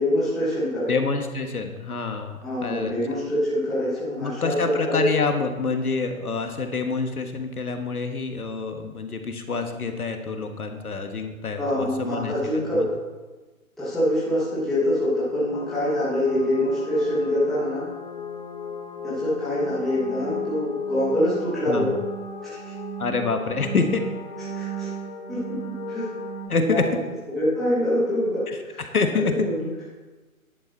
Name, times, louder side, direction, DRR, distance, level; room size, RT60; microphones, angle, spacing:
voice 1, 0.0-0.9 2.4-5.1 11.6-12.8 13.8-17.8 19.0-21.9 22.4-22.6 24.5-24.9 25.3-25.6 25.9-26.1 26.5-26.9 27.3-28.9 29.1-29.7, left 1 dB, ahead, -11 dB, 1.2 m, -25 dB
voice 2, 0.9-2.9 4.2-12.3 12.7-12.9 21.7-21.9 23.0-24.0 26.5-26.9 28.5-29.3, left 4 dB, 85° left, 6 dB, 1.5 m, -27 dB
sound 1, 15.5-26.5, left 1 dB, 35° left, 1.8 m, -34 dB
10.5 x 8.0 x 4.1 m, 1.3 s
hypercardioid pair, 150°, 43 cm